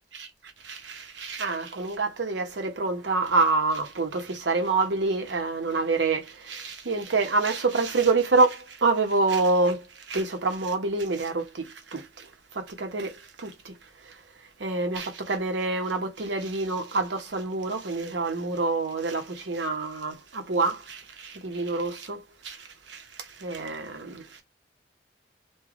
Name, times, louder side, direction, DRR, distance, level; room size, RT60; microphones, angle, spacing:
voice 1, 0.6-14.2 14.6-24.4, right 3 dB, 70° right, 0.8 m, -27 dB
3.2 x 2.2 x 2.4 m
head